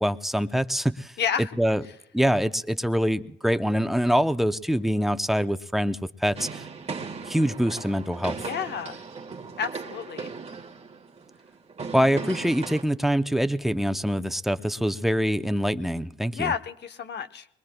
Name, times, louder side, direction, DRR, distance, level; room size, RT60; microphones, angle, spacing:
voice 1, 0.0-1.1 1.6-1.8 2.1-6.6 7.3-8.4 11.9-16.5, equal, ahead, 0.5 m, -24 dB
voice 2, 1.2-1.5 8.4-9.0 9.6-10.3 16.3-17.5, left 7 dB, 60° left, 0.8 m, -30 dB
sound 1, 6.4-12.8, right 4 dB, 30° right, 1.4 m, -37 dB
23.0 x 21.0 x 2.2 m
cardioid pair, 90°, 20 cm